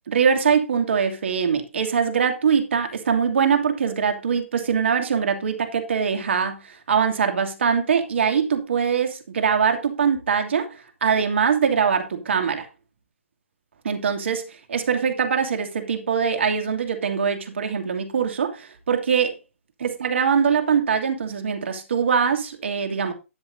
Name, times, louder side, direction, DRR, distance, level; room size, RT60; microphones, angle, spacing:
voice 1, 0.1-12.7 13.8-14.4 14.7-19.4 19.8-23.1, right 6 dB, 60° right, 2.7 m, -22 dB
13.0 x 9.7 x 2.7 m
figure-of-eight pair, 135°, 7 cm